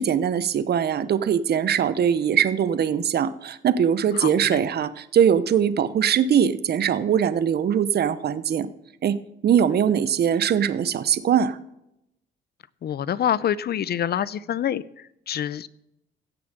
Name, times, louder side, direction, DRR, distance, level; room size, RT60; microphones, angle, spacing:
voice 1, 0.0-8.7 9.0-9.2 9.4-11.6, right 8 dB, 55° right, 15 dB, 0.8 m, -21 dB
voice 2, 4.2-4.6 12.8-15.7, left 10 dB, 55° left, 20 dB, 0.6 m, -26 dB
16.5 x 7.0 x 6.7 m, 0.83 s
cardioid pair, 90°, 20 cm